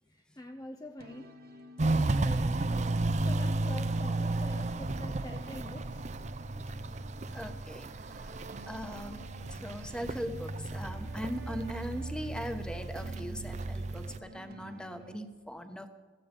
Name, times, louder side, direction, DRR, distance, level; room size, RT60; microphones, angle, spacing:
voice 1, 0.1-6.1, left 1 dB, 20° left, 5 dB, 0.6 m, -47 dB
sound 1, 1.0-15.2, right 2 dB, 60° right, 1.2 m, -51 dB
Walk footsteps, 1.8-14.2, right 2 dB, 40° right, 0.6 m, -33 dB
voice 2, 7.3-8.3 8.7-9.2 9.5-15.9, equal, 5° left, 7 dB, 1.1 m, -40 dB
15.5 x 15.5 x 5.3 m, 1.4 s
head